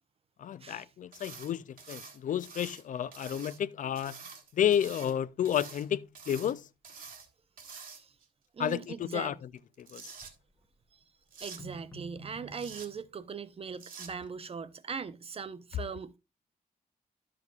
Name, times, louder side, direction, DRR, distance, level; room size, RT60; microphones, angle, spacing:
voice 1, 0.4-4.3 4.5-6.7 8.6-9.4 9.8-10.1, left 9 dB, 60° left, 0.4 m, -31 dB
sound 1, 1.1-1.5 1.8-2.8 3.1-3.6 4.0-5.1 5.4-5.8 6.1-6.5 6.8-7.3 7.6-8.2 9.6-10.3 11.3-11.6 12.5-12.9 13.7-14.1, right 5 dB, 70° right, 1.6 m, -47 dB
voice 2, 8.5-9.3 11.4-16.1, right 6 dB, 40° right, 0.6 m, -40 dB
sound 2, 10.2-10.7 11.4-13.1, right 3 dB, 15° left, 1.1 m, -49 dB
10.5 x 7.5 x 2.3 m
cardioid pair, 85°, 15 cm